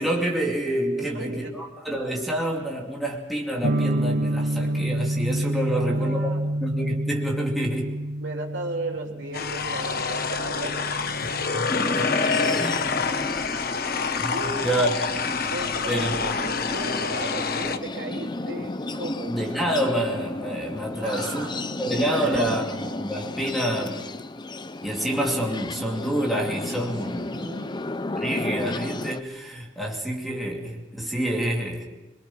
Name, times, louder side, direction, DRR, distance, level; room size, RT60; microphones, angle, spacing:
voice 1, 0.0-6.2 6.6-7.9 11.2-12.1 12.5-12.7 14.2-15.2 15.9-16.1 19.3-24.0 24.8-27.3 28.2-31.9, right 1 dB, ahead, -1 dB, 2.6 m, -28 dB
voice 2, 0.9-1.6 5.6-6.5 8.2-10.8 11.8-12.8 14.3-14.7 15.5-19.4 21.0-21.6 22.1-22.6 27.0-27.8, right 2 dB, 70° right, 0 dB, 3.8 m, -35 dB
sound 1, 3.6-13.4, right 1 dB, 50° right, 0.7 m, -29 dB
sound 2, 9.3-17.8, left 5 dB, 55° left, 1.1 m, -27 dB
sound 3, 11.7-29.2, left 2 dB, 25° left, 0.6 m, -33 dB
24.0 x 23.0 x 6.1 m, 1.1 s
head